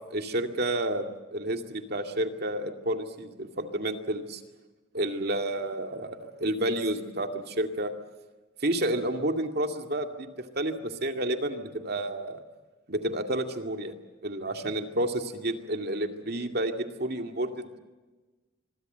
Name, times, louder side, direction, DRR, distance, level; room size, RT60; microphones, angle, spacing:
voice 1, 0.1-1.0 1.3-4.4 4.9-7.9 8.6-10.3 10.5-12.4 12.9-13.9 14.2-17.8, right 1 dB, 50° right, 5 dB, 2.3 m, -30 dB
25.5 x 22.5 x 8.0 m, 1.2 s
head